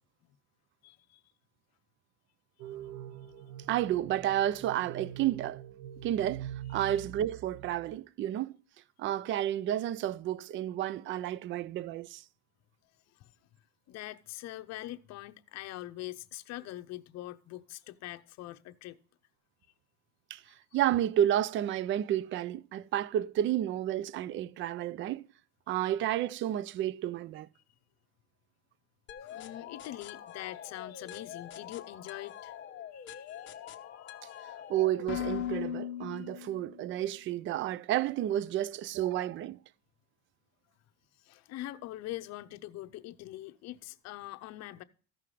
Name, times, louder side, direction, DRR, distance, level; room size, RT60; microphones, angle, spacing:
voice 1, 0.8-1.2 6.8-6.9 13.2-13.5 13.9-19.0 20.5-20.6 29.2-32.5 32.9-34.7 36.1-36.3 41.2-44.8, left 15 dB, 60° left, 0.8 m, -44 dB
sound 1, 2.6-8.0, right 11 dB, 75° right, 1.0 m, -44 dB
voice 2, 3.7-5.6 6.0-8.5 9.0-12.2 20.3-25.2 25.7-27.5 34.7-39.6, right 12 dB, 40° right, 0.4 m, -31 dB
sound 2, 29.1-36.9, left 10 dB, 40° left, 1.0 m, -41 dB
14.5 x 5.8 x 4.9 m
cardioid pair, 135°, 30 cm